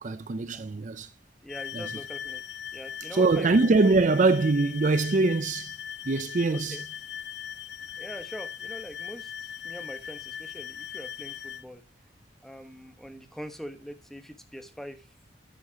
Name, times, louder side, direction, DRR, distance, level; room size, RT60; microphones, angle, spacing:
voice 1, 0.0-1.1 1.7-1.9 3.1-5.8 6.1-6.9, right 3 dB, 45° right, 0.5 m, -23 dB
voice 2, 1.4-2.4 2.7-3.5 6.5-6.8 8.0-9.3 9.6-11.8 12.4-15.0, equal, ahead, 1.2 m, -42 dB
sound 1, 1.5-11.6, left 9 dB, 70° left, 0.6 m, -39 dB
10.0 x 9.4 x 2.8 m
head